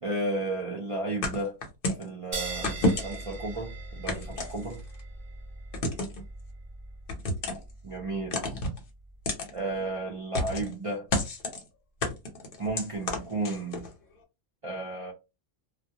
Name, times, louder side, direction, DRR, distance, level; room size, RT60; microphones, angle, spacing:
voice 1, 0.0-1.6 2.0-4.8 7.8-8.4 9.5-11.1 12.6-13.9 14.6-15.1, right 2 dB, 60° right, 0.3 m, -33 dB
sound 1, 1.2-2.1 2.6-3.3 4.1-5.0 5.7-6.2 7.1-7.7 8.3-8.8 9.3-9.5 10.3-10.7 11.1-11.6 12.0-13.9, left 2 dB, 55° left, 0.8 m, -30 dB
sound 2, 2.3-9.3, right 3 dB, 30° right, 0.7 m, -41 dB
2.2 x 2.1 x 2.7 m
omnidirectional pair, 1.3 m